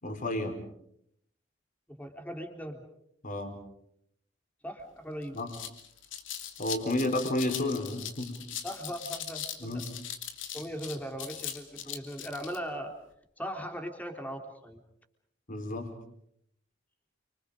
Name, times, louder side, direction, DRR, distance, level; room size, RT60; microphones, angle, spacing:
voice 1, 0.0-0.6 3.2-3.6 5.3-5.5 6.6-8.4 9.6-10.0 15.5-15.9, left 1 dB, 45° left, 5 dB, 5.0 m, -31 dB
voice 2, 1.9-2.8 4.6-5.4 8.6-9.8 10.5-12.9 13.4-14.8, equal, 10° left, 4 dB, 3.7 m, -39 dB
sound 1, 4.8-4.9 5.2-12.6, left 9 dB, 75° left, 2.9 m, -40 dB
30.0 x 26.0 x 5.2 m, 0.73 s
head